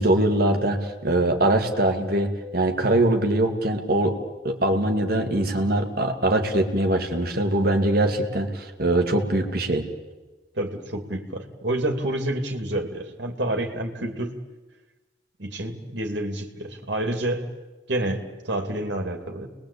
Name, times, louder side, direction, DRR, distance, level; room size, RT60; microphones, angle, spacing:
voice 1, 0.0-4.2 4.4-9.8, right 1 dB, 50° right, 4 dB, 2.4 m, -22 dB
voice 2, 10.5-14.4 15.4-17.5 17.9-19.5, right 1 dB, 65° right, 4 dB, 2.8 m, -28 dB
29.0 x 21.0 x 8.6 m, 1.2 s
head